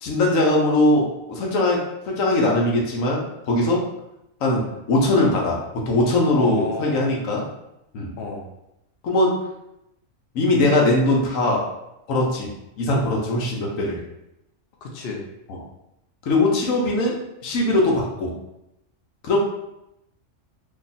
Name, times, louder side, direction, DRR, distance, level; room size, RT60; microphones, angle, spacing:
voice 1, 0.0-3.9 4.4-7.4 7.9-8.1 9.0-9.5 10.3-11.7 12.1-12.5 12.8-14.0 16.2-18.3 19.2-19.4, left 2 dB, 80° left, -1 dB, 1.2 m, -21 dB
voice 2, 6.3-7.0 8.2-8.5 14.8-15.2, left 4 dB, 55° left, -1 dB, 0.8 m, -31 dB
2.9 x 2.3 x 4.0 m, 0.85 s
omnidirectional pair, 1.4 m